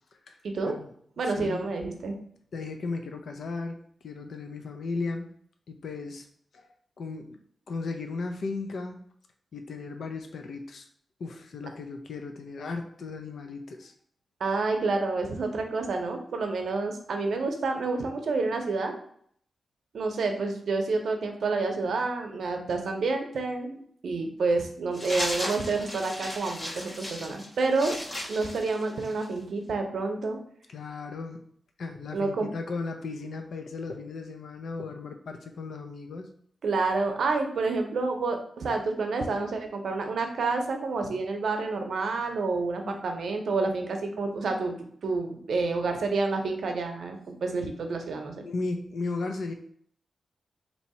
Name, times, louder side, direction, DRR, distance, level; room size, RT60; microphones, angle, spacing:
voice 1, 0.4-0.8 1.2-2.2 14.4-18.9 19.9-23.8 24.0-28.0 28.3-30.4 32.1-32.5 36.6-44.7 45.0-48.5, right 3 dB, 75° right, 4 dB, 0.6 m, -29 dB
voice 2, 2.5-3.8 4.0-5.3 5.7-6.3 6.5-6.7 7.0-7.4 7.7-9.0 9.5-10.9 11.2-13.9 30.7-31.4 31.8-36.3 42.9-43.0 48.4-49.5, left 3 dB, 70° left, 5 dB, 0.4 m, -35 dB
sound 1, 24.9-29.4, left 1 dB, 30° left, 0.9 m, -36 dB
2.9 x 2.7 x 4.2 m, 0.62 s
wide cardioid pair, 150°, 0 cm